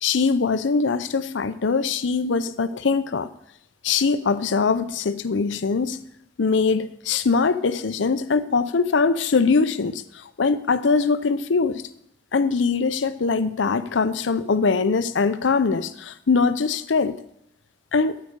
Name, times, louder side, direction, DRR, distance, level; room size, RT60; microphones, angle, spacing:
voice 1, 0.0-3.3 3.8-6.0 6.4-11.9 12.3-17.2 17.9-18.2, left 4 dB, 80° left, 0.6 m, -22 dB
13.5 x 4.9 x 6.5 m
head